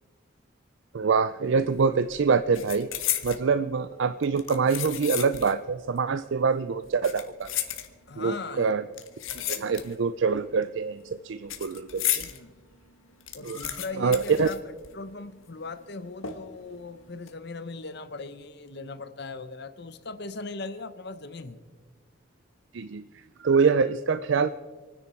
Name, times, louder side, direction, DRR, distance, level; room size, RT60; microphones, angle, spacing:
voice 1, 0.9-2.9 3.2-7.5 8.2-8.8 9.5-12.3 13.4-13.7 14.0-14.5 22.7-23.0 23.4-24.5, right 5 dB, 60° right, 13 dB, 0.4 m, -25 dB
sound 1, 1.5-1.8 2.1-3.5 4.2-5.6 5.9-6.0 6.8-8.3 8.9-10.1 10.4-12.4 12.8-12.9 13.1-15.2 15.4-15.5 16.2-16.7 17.1-17.3, left 12 dB, 75° left, 1.4 m, -33 dB
voice 2, 8.1-8.7 9.3-9.8 12.3-12.5 13.3-14.6 14.9-21.6, left 3 dB, 55° left, 11 dB, 0.9 m, -39 dB
27.5 x 10.0 x 4.4 m, 1.4 s
head